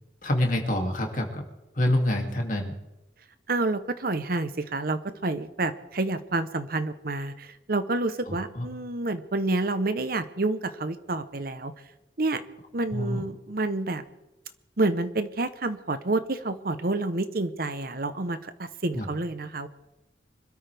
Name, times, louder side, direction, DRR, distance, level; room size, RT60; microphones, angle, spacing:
voice 1, 0.2-1.4 1.7-2.7 8.3-8.6 12.9-13.2 18.9-19.1, left 1 dB, 45° left, 2 dB, 2.6 m, -26 dB
voice 2, 3.5-11.7 12.2-12.4 12.7-14.0 14.8-19.7, right 2 dB, 55° right, 11 dB, 0.9 m, -29 dB
25.5 x 13.0 x 3.5 m, 0.96 s
head